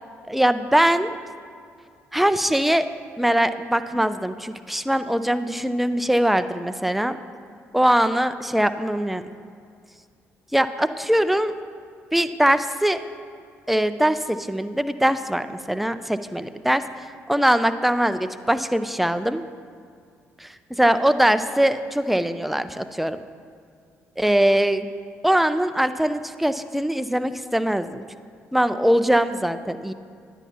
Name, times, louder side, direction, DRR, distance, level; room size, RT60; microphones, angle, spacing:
voice 1, 0.3-1.1 2.1-2.9 3.2-7.2 7.7-9.2 10.5-11.5 12.1-13.0 13.7-19.4 20.4-23.2 24.2-24.9 25.2-28.0 28.5-29.9, right 1 dB, ahead, 11 dB, 0.4 m, -22 dB
9.8 x 9.1 x 2.9 m, 2.2 s
hypercardioid pair, 50°, 7 cm